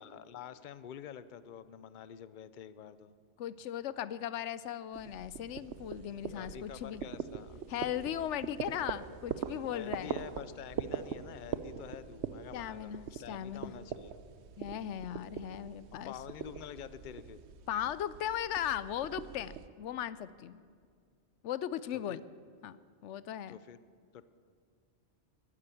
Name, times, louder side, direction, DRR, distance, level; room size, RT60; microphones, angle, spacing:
voice 1, 0.0-3.1 6.3-7.6 9.7-14.1 15.9-17.4 22.1-22.2 23.5-23.8 24.1-24.3, left 9 dB, 50° left, 14 dB, 0.7 m, -47 dB
voice 2, 3.4-7.0 7.7-10.1 12.5-13.7 14.6-16.1 17.7-20.6 21.4-22.2 22.6-22.8 23.0-23.6, left 10 dB, 90° left, 17 dB, 0.9 m, -37 dB
sound 1, 4.9-19.7, right 8 dB, 75° right, 1.0 m, -43 dB
15.0 x 10.0 x 9.1 m, 2.1 s
omnidirectional pair, 1.2 m